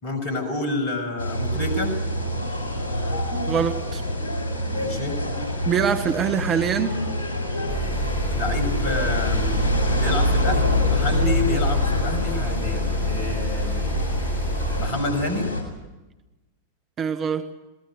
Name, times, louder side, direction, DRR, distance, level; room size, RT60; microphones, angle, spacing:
voice 1, 0.0-2.0 4.6-5.2 8.3-9.5 9.9-13.9 14.8-15.5, left 2 dB, 45° left, 9 dB, 6.6 m, -28 dB
sound 1, 1.2-15.6, left 1 dB, 70° left, 6.5 m, -26 dB
voice 2, 3.5-4.0 5.7-7.0 17.0-17.5, right 7 dB, 25° right, 8 dB, 1.6 m, -24 dB
sound 2, 7.7-14.9, right 1 dB, 5° right, 1.7 m, -28 dB
27.5 x 18.5 x 6.4 m, 1.1 s
figure-of-eight pair, 90°, 0 cm